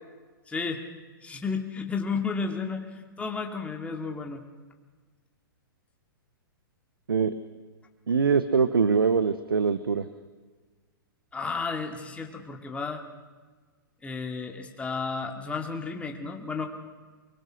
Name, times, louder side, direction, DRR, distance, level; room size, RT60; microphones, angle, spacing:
voice 1, 0.5-0.8 1.2-4.4 11.3-13.0 14.0-16.7, left 4 dB, 10° left, 2 dB, 2.3 m, -32 dB
voice 2, 8.1-10.1, right 5 dB, 85° right, 13 dB, 1.0 m, -23 dB
25.0 x 21.5 x 6.4 m, 1.4 s
hypercardioid pair, 115°, 12 cm